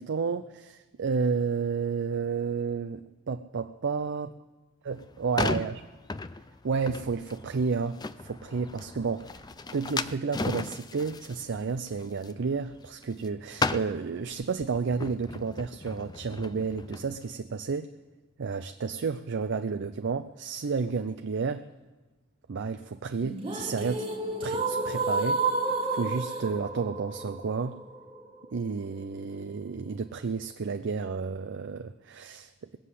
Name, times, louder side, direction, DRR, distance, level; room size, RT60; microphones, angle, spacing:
voice 1, 0.0-4.3 4.8-5.8 6.6-9.3 9.7-17.9 18.4-21.7 22.5-24.1 24.4-25.5 25.9-27.8 28.5-32.8, right 5 dB, 60° right, 9 dB, 0.5 m, -31 dB
sound 1, 4.9-13.3 13.5-17.2, left 3 dB, 20° left, 0.4 m, -36 dB
sound 2, 23.2-29.2, right 3 dB, 25° right, 1.6 m, -31 dB
20.5 x 7.6 x 8.3 m, 1.2 s
head